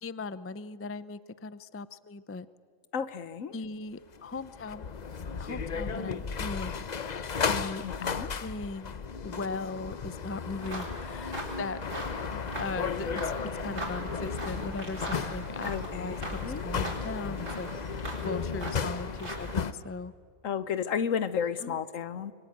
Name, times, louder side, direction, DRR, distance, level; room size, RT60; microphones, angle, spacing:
voice 1, 0.0-2.5 3.5-4.9 5.4-11.8 12.3-17.7 18.2-20.1 21.6-21.8, left 3 dB, 20° left, 15 dB, 0.3 m, -39 dB
voice 2, 2.9-3.5 7.8-8.3 15.6-16.7 20.4-22.3, left 7 dB, 80° left, 14 dB, 1.3 m, -32 dB
sound 1, 4.2-19.7, left 5 dB, 40° left, 0.8 m, -35 dB
sound 2, 10.6-19.7, right 1 dB, 70° right, 5.2 m, -40 dB
26.5 x 23.5 x 9.4 m, 2.2 s
omnidirectional pair, 1.3 m